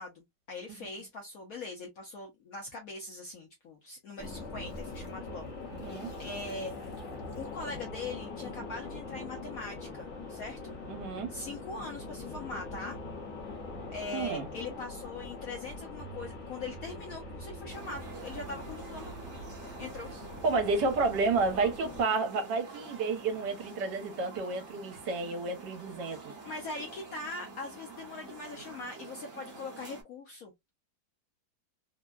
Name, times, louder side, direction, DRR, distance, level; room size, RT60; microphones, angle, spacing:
voice 1, 0.0-5.5 6.2-6.7 7.4-10.7 11.3-13.0 13.9-19.1 19.8-20.1 26.4-30.7, left 3 dB, 65° left, 0.9 m, -41 dB
sound 1, 4.2-22.0, left 2 dB, 45° left, 1.1 m, -42 dB
voice 2, 5.7-6.1 10.9-11.3 14.1-14.5 20.4-26.3, right 3 dB, 65° right, 1.4 m, -31 dB
sound 2, 17.7-30.0, right 3 dB, 45° right, 1.1 m, -47 dB
3.4 x 2.1 x 2.3 m
omnidirectional pair, 2.1 m